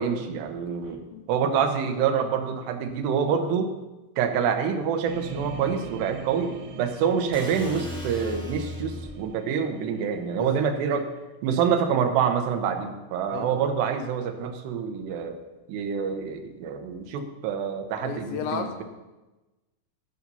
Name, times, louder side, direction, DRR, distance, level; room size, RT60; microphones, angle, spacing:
voice 1, 0.0-1.0 1.3-3.7 4.2-15.4 15.7-18.8, right 7 dB, 90° right, 6 dB, 3.1 m, -26 dB
sound 1, 5.1-11.3, right 5 dB, 75° right, 2.3 m, -41 dB
sound 2, 7.3-9.3, equal, ahead, 1.5 m, -37 dB
voice 2, 18.0-18.8, left 7 dB, 80° left, 6 dB, 2.2 m, -33 dB
14.5 x 7.4 x 5.5 m, 1.1 s
omnidirectional pair, 4.7 m